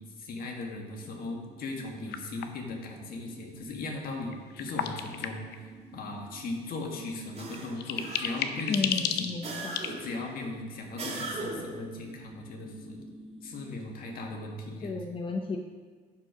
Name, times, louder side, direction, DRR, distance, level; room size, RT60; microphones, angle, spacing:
voice 1, 0.0-9.4 9.8-13.0 13.4-15.0, left 2 dB, 60° left, 1 dB, 1.8 m, -38 dB
sound 1, 0.8-14.6, right 2 dB, 5° right, 1.4 m, -51 dB
sound 2, 2.1-2.7 4.3-5.7 7.1-7.2 7.5-9.9, left 9 dB, 80° left, 0.8 m, -32 dB
sound 3, 7.3-8.6 9.4-10.2 11.0-11.8, right 3 dB, 40° right, 2.4 m, -38 dB
voice 2, 8.7-9.8 14.8-15.6, left 4 dB, 30° left, 3 dB, 0.7 m, -32 dB
11.5 x 5.5 x 5.1 m, 1.5 s
cardioid pair, 110°, 17 cm